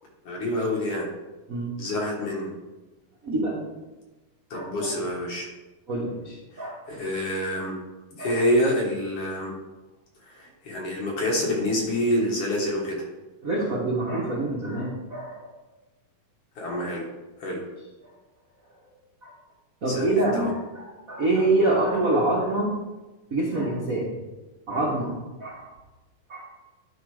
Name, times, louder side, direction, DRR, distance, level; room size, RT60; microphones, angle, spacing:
voice 1, 0.3-1.1 1.8-2.5 4.5-5.5 6.5-7.7 8.1-9.5 10.3-13.0 16.6-17.1 17.4-17.6 19.9-20.5, left 1 dB, 55° left, -2 dB, 2.2 m, -27 dB
voice 2, 3.2-3.5 4.5-4.9 5.9-6.8 8.2-8.4 13.4-15.5 19.2-19.3 19.8-22.7 23.3-24.1 24.7-25.1 25.4-25.7 26.3-26.5, right 2 dB, 60° right, -5 dB, 0.8 m, -26 dB
11.0 x 3.9 x 4.9 m, 1.1 s
omnidirectional pair, 3.7 m